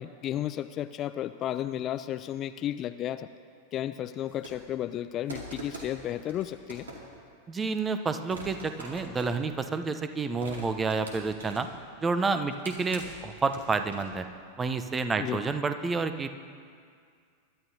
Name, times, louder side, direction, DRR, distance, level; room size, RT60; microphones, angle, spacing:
voice 1, 0.0-3.3 3.7-6.9 15.2-15.4, left 11 dB, 30° left, 12 dB, 0.4 m, -33 dB
sound 1, 4.3-4.8 5.3-7.2 7.7-7.9 8.3-9.9 10.4-11.9 12.3-14.3, right 1 dB, 70° right, 2.4 m, -44 dB
voice 2, 7.5-11.7 12.0-14.2 14.6-16.4, right 4 dB, 15° right, 9 dB, 0.7 m, -29 dB
22.5 x 12.5 x 2.8 m, 2.2 s
figure-of-eight pair, 90°, 0 cm